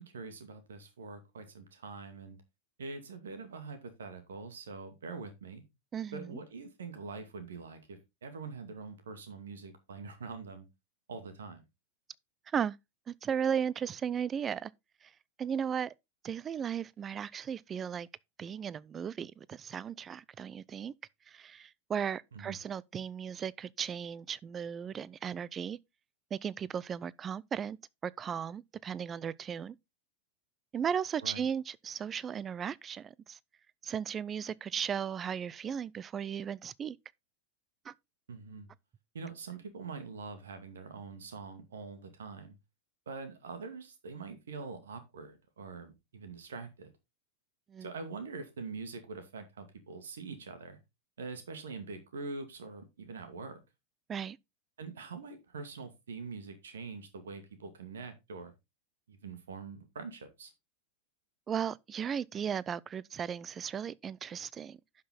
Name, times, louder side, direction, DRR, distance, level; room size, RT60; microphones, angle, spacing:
voice 1, 0.0-2.4 2.8-5.6 6.1-10.7 11.1-11.6 22.3-22.6 31.2-31.4 38.3-38.7 39.1-42.5 43.1-46.9 47.8-50.8 51.2-53.6 54.8-58.5 59.1-60.5, right 4 dB, 65° right, 2.3 m, -44 dB
voice 2, 5.9-6.4 12.5-12.8 13.1-14.7 15.0-15.1 15.4-15.9 16.2-18.1 18.4-20.9 21.3-25.8 26.3-27.8 28.0-29.8 30.7-33.4 33.8-37.0 37.8-37.9 47.7-47.9 54.1-54.4 61.5-64.8, right 8 dB, 25° right, 0.4 m, -36 dB
11.0 x 6.0 x 3.9 m
figure-of-eight pair, 90°, 0 cm